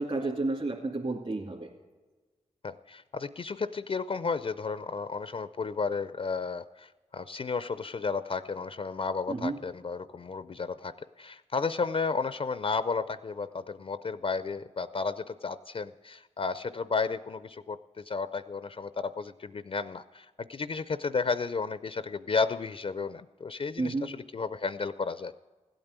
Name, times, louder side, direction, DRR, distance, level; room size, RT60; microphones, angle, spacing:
voice 1, 0.0-1.7 9.3-9.6 23.8-24.1, right 2 dB, 45° right, -1 dB, 2.3 m, -31 dB
voice 2, 2.6-25.4, left 4 dB, 45° left, 14 dB, 0.5 m, -33 dB
15.5 x 8.9 x 8.1 m, 1.3 s
cardioid pair, 45°, 13 cm